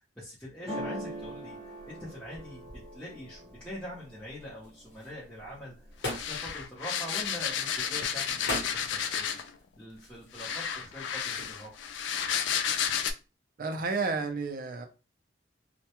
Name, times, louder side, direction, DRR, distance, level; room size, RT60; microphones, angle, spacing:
voice 1, 0.0-9.4 9.8-11.7, equal, 5° left, 0.7 m, -44 dB
sound 1, 0.7-4.5 5.0-5.6 5.9-6.6, equal, 25° right, 0.7 m, -42 dB
sound 2, 4.6-12.5, left 1 dB, 70° left, 1.0 m, -42 dB
sound 3, 6.1-9.6 10.3-13.1, left 8 dB, 90° left, 0.3 m, -32 dB
voice 2, 13.6-14.9, right 4 dB, 50° right, 0.4 m, -31 dB
2.2 x 2.1 x 2.8 m
head